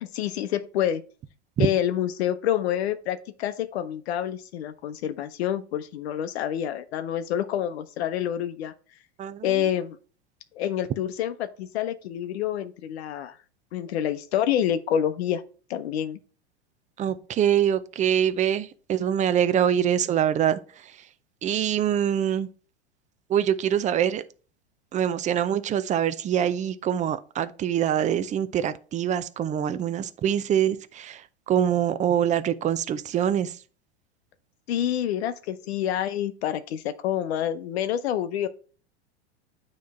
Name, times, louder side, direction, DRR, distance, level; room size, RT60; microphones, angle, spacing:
voice 1, 0.0-1.0 1.6-8.7 9.4-10.0 10.5-13.3 13.7-15.4 15.7-16.2 34.7-38.5, left 10 dB, 70° left, 0.8 m, -27 dB
voice 2, 9.2-9.6 17.0-20.6 21.4-22.5 23.3-24.2 24.9-31.2 31.5-33.5, right 9 dB, 20° right, 0.5 m, -24 dB
9.2 x 3.2 x 4.1 m
hypercardioid pair, 105°, 33 cm